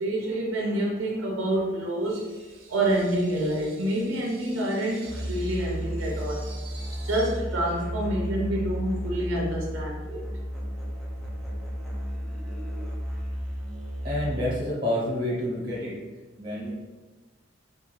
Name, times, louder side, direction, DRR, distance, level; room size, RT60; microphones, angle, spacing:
voice 1, 0.0-10.2, right 1 dB, 75° right, -2 dB, 0.5 m, -28 dB
Musical instrument, 5.0-14.8, equal, ahead, 0.3 m, -33 dB
voice 2, 14.0-16.0 16.4-16.7, left 1 dB, 35° right, -5 dB, 0.8 m, -28 dB
2.3 x 2.3 x 3.1 m, 1.2 s
head